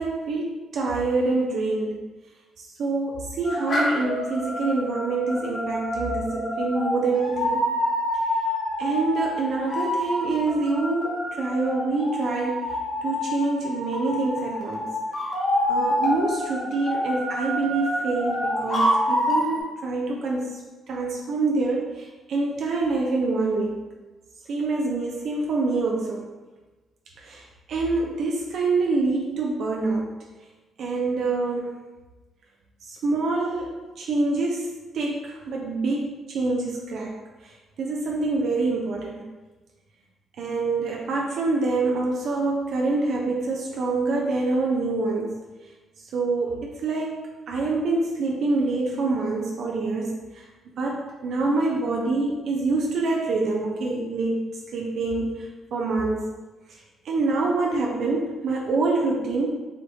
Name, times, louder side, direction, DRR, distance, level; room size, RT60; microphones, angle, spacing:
voice 1, 0.0-2.0 2.6-7.6 8.8-12.7 13.0-14.9 15.7-20.6 20.9-23.8 24.5-26.3 27.2-30.1 30.8-31.8 32.9-37.1 37.4-39.2 40.4-45.4 46.0-50.5 50.8-54.5 54.7-56.2 56.7-59.6, right 3 dB, 65° right, -2 dB, 0.5 m, -26 dB
sound 1, 3.4-19.6, left 1 dB, 45° left, 1.1 m, -27 dB
4.9 x 2.6 x 3.1 m, 1.2 s
cardioid pair, 90°, 0 cm